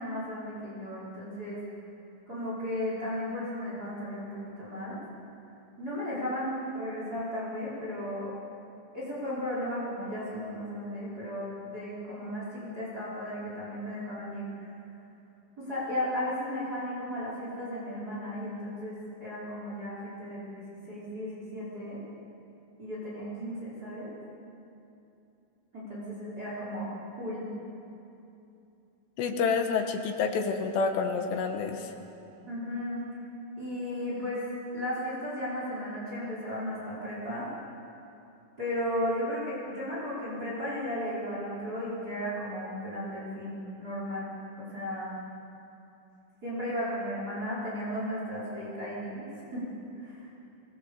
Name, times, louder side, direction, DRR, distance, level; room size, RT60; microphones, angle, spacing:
voice 1, 0.0-1.6 2.3-5.0 5.8-8.3 8.9-14.5 15.6-22.0 22.8-24.1 25.7-26.9 27.2-27.5 32.5-33.0 33.6-34.5 34.7-37.5 38.6-44.3 44.6-45.1 46.4-49.6 50.0-50.3, left 1 dB, 20° right, -7 dB, 5.2 m, -35 dB
voice 2, 29.2-31.9, left 5 dB, 70° left, 5 dB, 3.2 m, -28 dB
23.0 x 20.5 x 7.2 m, 2.8 s
omnidirectional pair, 5.6 m